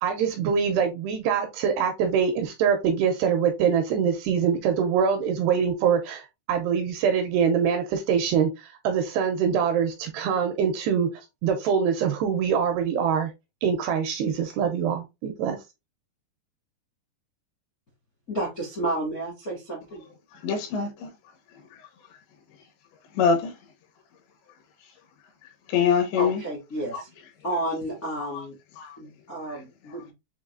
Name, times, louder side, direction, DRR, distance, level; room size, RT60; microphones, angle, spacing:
voice 1, 0.0-6.2 6.5-8.5 8.8-11.1 11.4-13.3 13.6-15.6, right 7 dB, 85° right, 2.4 m, -24 dB
voice 2, 18.3-20.0 26.2-27.1 27.4-28.5 29.0-30.1, right 1 dB, 55° left, 0.9 m, -31 dB
voice 3, 20.4-21.1 23.2-23.5 25.7-26.4 26.9-27.0 28.2-28.3 28.8-29.0 29.5-29.6, left 6 dB, 80° left, 3.2 m, -24 dB
7.2 x 2.6 x 2.5 m
omnidirectional pair, 5.2 m